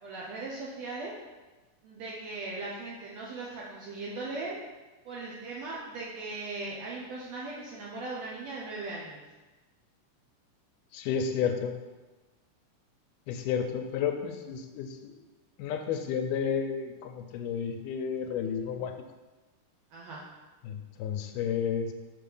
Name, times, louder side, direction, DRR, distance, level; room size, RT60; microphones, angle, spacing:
voice 1, 0.0-1.1 1.8-4.6 5.1-9.2 19.9-20.2, right 3 dB, 70° right, -4 dB, 1.8 m, -38 dB
voice 2, 10.9-11.7 13.3-15.2 15.6-18.9 20.6-21.9, left 7 dB, 85° left, 5 dB, 2.1 m, -31 dB
6.4 x 4.2 x 5.4 m, 1.2 s
omnidirectional pair, 3.7 m